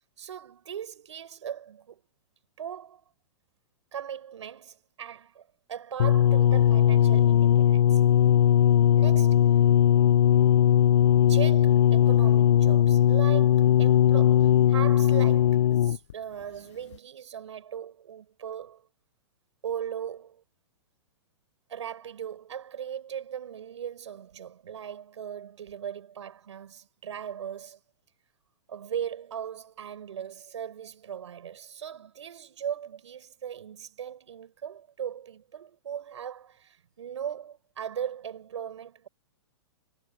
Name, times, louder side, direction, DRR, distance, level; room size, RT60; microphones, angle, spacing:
voice 1, 0.2-2.0 2.6-3.0 3.9-8.1 9.0-9.4 11.1-18.8 19.6-20.4 21.7-27.8 28.7-39.1, right 9 dB, 90° right, 6.0 m, -38 dB
sound 1, 6.0-16.1 16.9-17.0, left 10 dB, 80° left, 0.5 m, -19 dB
hypercardioid pair, 165°, 15 cm